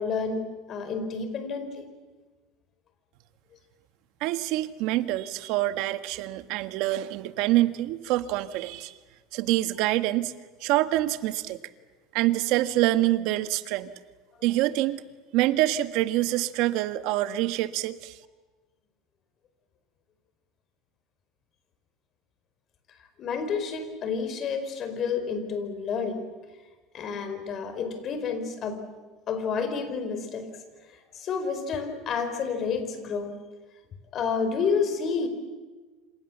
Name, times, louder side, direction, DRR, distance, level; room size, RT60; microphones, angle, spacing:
voice 1, 0.0-1.9 23.2-26.3 26.9-28.8 29.3-30.5 30.9-33.4 34.1-35.3, left 5 dB, 40° left, 9 dB, 4.8 m, -30 dB
voice 2, 4.2-8.9 9.3-10.3 10.6-11.6 12.1-13.9 14.4-15.0 15.3-18.2, right 15 dB, 70° right, 12 dB, 1.4 m, -26 dB
27.5 x 27.5 x 7.4 m, 1.3 s
cardioid pair, 135°, 0 cm